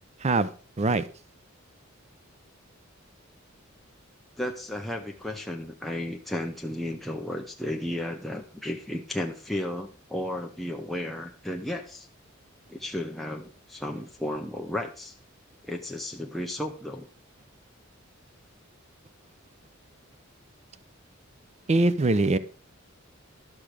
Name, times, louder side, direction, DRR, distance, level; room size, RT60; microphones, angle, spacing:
voice 1, 4.4-12.1 12.7-15.2 15.6-17.1, left 1 dB, ahead, 0.7 m, -34 dB
voice 2, 21.7-22.4, right 2 dB, 30° right, 0.5 m, -22 dB
12.0 x 6.1 x 5.0 m
head